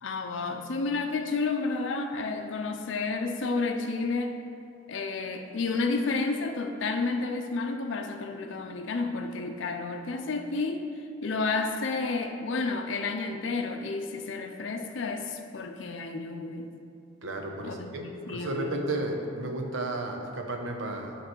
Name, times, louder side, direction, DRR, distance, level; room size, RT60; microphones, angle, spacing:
voice 1, 0.0-4.4 4.9-10.9 11.2-16.7 17.6-18.8, left 3 dB, 70° left, 4 dB, 0.5 m, -31 dB
voice 2, 17.2-21.2, right 2 dB, 80° right, 2 dB, 0.9 m, -33 dB
9.0 x 3.2 x 6.0 m, 2.5 s
head